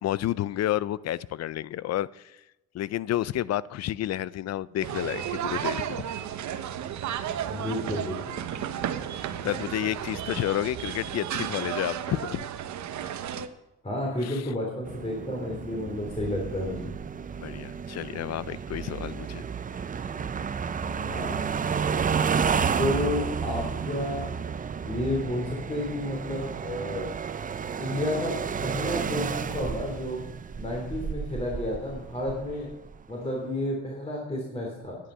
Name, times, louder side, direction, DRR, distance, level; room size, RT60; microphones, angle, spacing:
voice 1, 0.0-2.3 2.7-6.0 8.8-12.5 14.2-14.4 17.4-19.4, left 13 dB, 60° left, 0.5 m, -30 dB
sound 1, 4.8-13.5, right 10 dB, 70° right, 0.9 m, -33 dB
voice 2, 7.5-8.4 13.8-16.9 20.9-21.5 22.8-24.2 24.8-27.1 27.8-28.4 28.6-30.2 30.5-32.7 33.1-35.0, left 1 dB, 20° left, 3.1 m, -31 dB
sound 2, 14.9-33.0, right 6 dB, 25° right, 0.5 m, -31 dB
10.5 x 10.0 x 5.6 m
cardioid pair, 90°, 30 cm